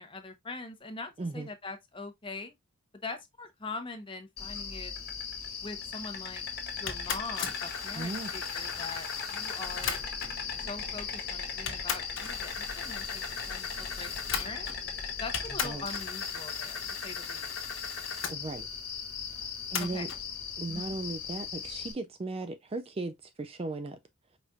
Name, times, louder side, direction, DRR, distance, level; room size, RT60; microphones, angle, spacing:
voice 1, 0.0-2.5 3.0-4.9 5.6-6.4 6.7-10.0 10.7-14.7 15.2-17.5 19.8-20.1 20.7-20.9, left 3 dB, 25° left, 0.9 m, -42 dB
voice 2, 1.2-1.5 8.0-8.3 15.6-15.9 18.3-18.7 19.7-20.1 20.6-24.0, right 2 dB, 25° right, 0.4 m, -36 dB
Insect, 4.4-21.9, left 6 dB, 45° left, 1.3 m, -38 dB
sound 1, 6.9-10.4 11.2-11.3 11.7-14.9 15.3-18.4 19.7-20.2, left 6 dB, 65° left, 1.1 m, -38 dB
sound 2, 9.6-15.4, left 1 dB, 80° right, 3.2 m, -48 dB
5.0 x 4.1 x 2.3 m
head